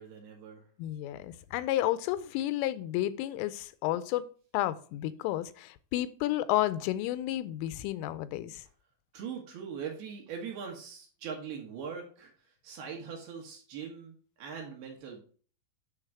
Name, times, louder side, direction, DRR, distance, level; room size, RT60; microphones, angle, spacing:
voice 1, 0.0-0.7 9.1-15.2, right 6 dB, 65° right, 2.9 m, -41 dB
voice 2, 0.8-4.3 4.5-8.6, left 14 dB, 90° left, 3.1 m, -31 dB
10.0 x 3.8 x 4.8 m
omnidirectional pair, 5.6 m